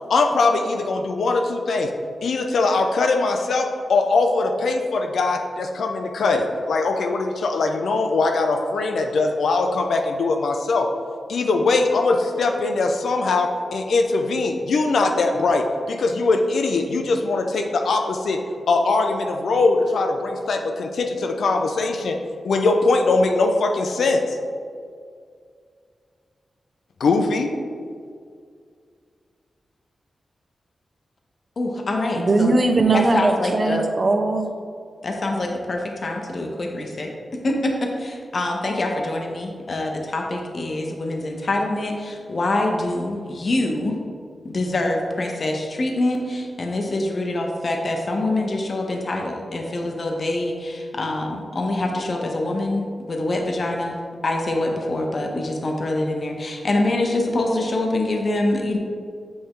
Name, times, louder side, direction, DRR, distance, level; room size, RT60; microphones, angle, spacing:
voice 1, 0.1-1.9 2.2-10.9 11.3-18.4 18.7-22.2 22.4-24.4 27.0-27.5, left 3 dB, 85° left, 4 dB, 0.4 m, -21 dB
voice 2, 31.6-32.5 32.9-33.8 35.0-44.0 44.4-58.8, left 2 dB, 45° left, 1 dB, 0.6 m, -25 dB
voice 3, 32.2-34.5, right 3 dB, 35° right, 5 dB, 0.5 m, -20 dB
7.9 x 3.4 x 3.6 m, 2.2 s
wide cardioid pair, 125°, 0 cm